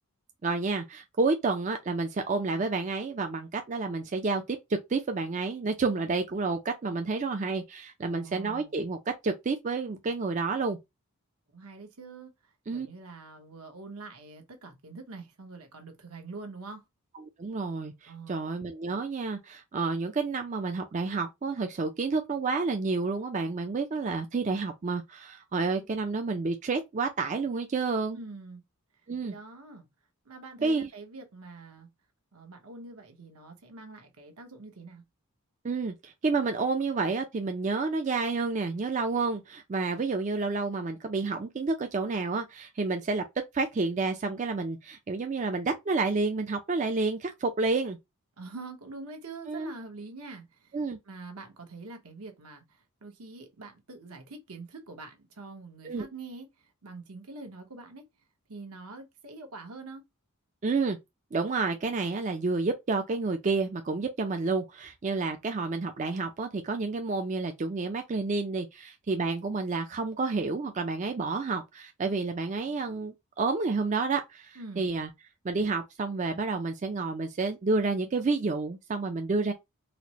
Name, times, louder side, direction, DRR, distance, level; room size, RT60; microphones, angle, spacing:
voice 1, 0.4-4.6 4.9-9.0 9.2-10.8 12.7-12.9 17.4-28.2 29.1-29.3 30.6-30.9 35.6-43.2 43.5-48.0 49.5-49.7 50.7-51.0 55.8-56.1 60.6-61.0 61.3-75.1 75.4-79.5, right 3 dB, 35° right, 0.4 m, -30 dB
voice 2, 8.0-8.8 11.5-16.8 18.1-18.5 28.1-28.6 29.2-29.9 30.2-31.9 32.3-35.0 48.4-50.8 51.0-58.1 58.5-60.0 74.5-74.9, right 3 dB, 80° right, 1.1 m, -45 dB
4.1 x 2.1 x 2.9 m
head